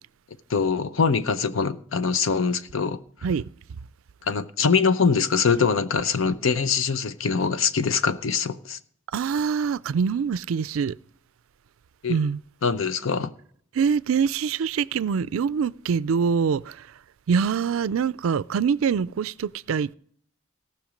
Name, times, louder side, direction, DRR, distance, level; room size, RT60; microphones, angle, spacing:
voice 1, 0.5-3.0 4.3-8.8 12.0-12.2 12.6-13.3, left 5 dB, 80° left, 0.7 m, -23 dB
voice 2, 9.1-10.9 12.1-12.4 13.8-16.8 17.3-19.9, right 6 dB, 85° right, 0.4 m, -24 dB
17.5 x 6.0 x 5.1 m
head